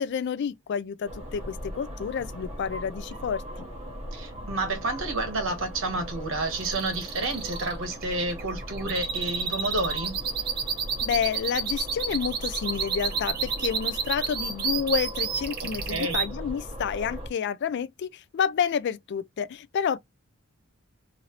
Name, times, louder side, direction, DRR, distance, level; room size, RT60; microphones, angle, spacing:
voice 1, 0.0-3.7 11.0-20.0, left 7 dB, 55° left, 0.3 m, -29 dB
sound 1, 1.0-17.3, equal, 30° right, 1.0 m, -39 dB
voice 2, 4.1-10.2 15.9-16.2, right 2 dB, 65° right, 1.1 m, -30 dB
sound 2, 6.5-16.3, right 6 dB, 50° right, 0.7 m, -30 dB
3.0 x 2.6 x 2.9 m
head